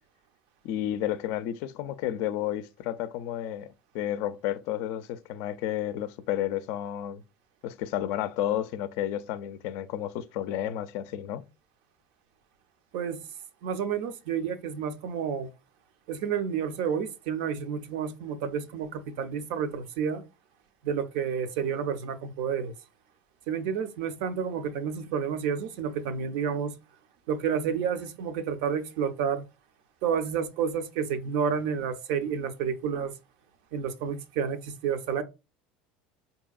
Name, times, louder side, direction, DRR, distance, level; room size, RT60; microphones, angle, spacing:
voice 1, 0.6-7.2 7.6-11.4, left 12 dB, 65° left, 0.4 m, -31 dB
voice 2, 13.6-15.5 16.1-20.2 20.8-22.7 23.5-26.8 27.3-29.4 30.0-33.1 33.7-35.2, right 7 dB, 70° right, 0.6 m, -30 dB
4.5 x 2.7 x 2.4 m
supercardioid pair, 95°, 4 cm